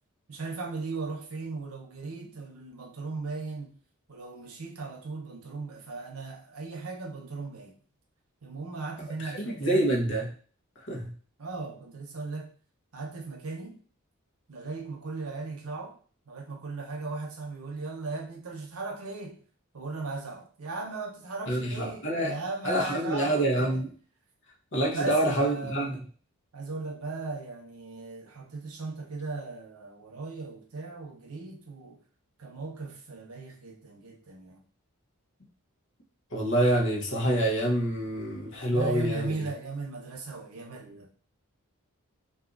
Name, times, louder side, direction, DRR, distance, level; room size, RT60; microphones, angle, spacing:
voice 1, 0.3-3.7 4.1-7.8 8.4-9.9 11.4-12.5 12.9-13.8 14.5-16.0 16.3-19.4 19.7-23.8 24.9-26.0 26.5-32.0 32.4-34.6 38.7-41.1, right 3 dB, 80° right, 1 dB, 0.8 m, -37 dB
voice 2, 9.2-10.3 10.9-11.1 21.5-22.3 22.6-23.9 24.7-26.0 36.3-39.5, right 1 dB, 55° left, -1 dB, 0.9 m, -27 dB
2.6 x 2.4 x 3.8 m, 0.42 s
head